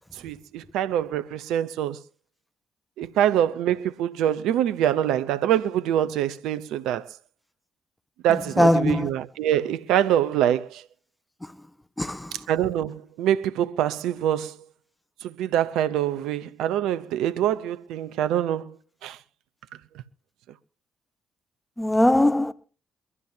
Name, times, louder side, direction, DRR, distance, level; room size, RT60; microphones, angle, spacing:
voice 1, 0.2-2.0 3.0-7.1 8.2-10.8 12.5-14.6 15.2-18.7 19.0-19.2, right 11 dB, 80° right, 0.7 m, -25 dB
voice 2, 8.3-9.1 12.0-12.3 21.8-22.5, left 1 dB, 10° left, 1.2 m, -21 dB
23.0 x 12.0 x 2.8 m
hypercardioid pair, 50°, 0 cm